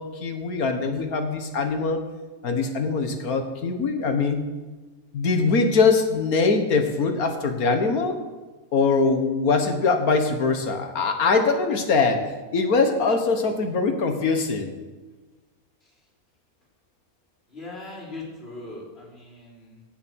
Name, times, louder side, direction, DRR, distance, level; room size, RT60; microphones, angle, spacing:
voice 1, 0.0-2.0 2.4-4.4 5.1-8.2 8.7-14.7, left 4 dB, 80° left, 6 dB, 1.8 m, -22 dB
voice 2, 17.5-19.8, left 2 dB, 45° left, -5 dB, 3.9 m, -39 dB
16.5 x 6.9 x 6.3 m, 1.3 s
omnidirectional pair, 1.5 m